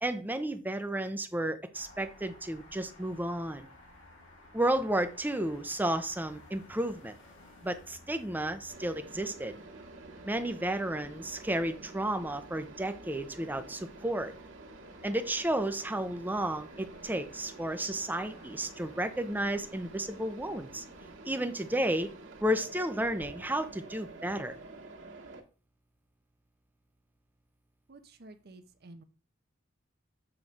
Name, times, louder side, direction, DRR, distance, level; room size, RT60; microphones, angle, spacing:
voice 1, 0.0-3.7 4.5-7.1 7.6-9.5 10.3-14.3 15.0-20.8 21.3-22.1 22.4-24.5, right 1 dB, 10° right, 7 dB, 0.6 m, -32 dB
sound 1, 1.7-21.3, left 1 dB, 75° left, 2.9 m, -57 dB
Mechanisms, 8.7-25.4, right 3 dB, 85° right, 1.3 m, -49 dB
voice 2, 27.9-29.0, right 2 dB, 55° right, 8 dB, 0.7 m, -51 dB
7.1 x 3.2 x 5.0 m, 0.37 s
head